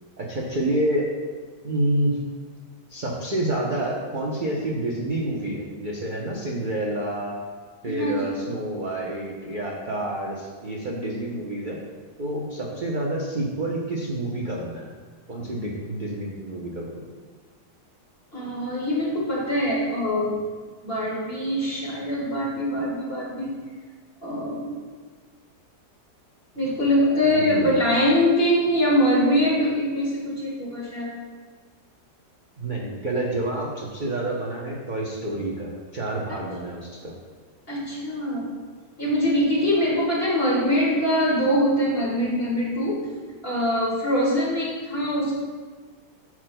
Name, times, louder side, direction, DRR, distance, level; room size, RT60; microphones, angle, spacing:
voice 1, 0.2-1.1 1.6-2.2 2.9-7.4 7.8-11.8 12.2-14.9 15.3-17.0 27.3-27.8 32.6-37.1, right 1 dB, 45° right, -3 dB, 0.7 m, -28 dB
voice 2, 7.8-8.3 18.3-20.3 20.8-23.5 24.2-24.7 26.5-31.1 37.7-38.5 39.0-43.0 43.4-45.3, equal, 35° left, -5 dB, 2.0 m, -23 dB
10.5 x 6.0 x 2.2 m, 1.5 s
omnidirectional pair, 1.8 m